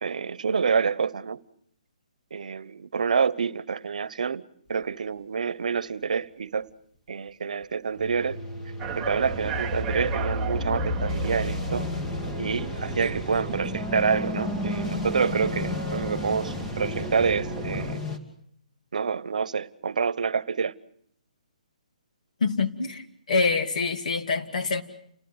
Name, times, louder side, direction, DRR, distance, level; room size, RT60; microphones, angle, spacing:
voice 1, 0.0-1.4 2.3-4.4 4.7-6.7 7.1-8.4 9.0-11.9 12.4-18.0 18.9-20.7, right 6 dB, 70° right, 1.0 m, -27 dB
sound 1, 8.0-18.2, left 2 dB, 20° left, 2.8 m, -32 dB
sound 2, 8.8-17.9, right 7 dB, 15° right, 1.1 m, -37 dB
voice 2, 22.4-24.8, left 4 dB, 65° left, 2.5 m, -26 dB
29.0 x 19.0 x 8.0 m
hypercardioid pair, 155°, 4 cm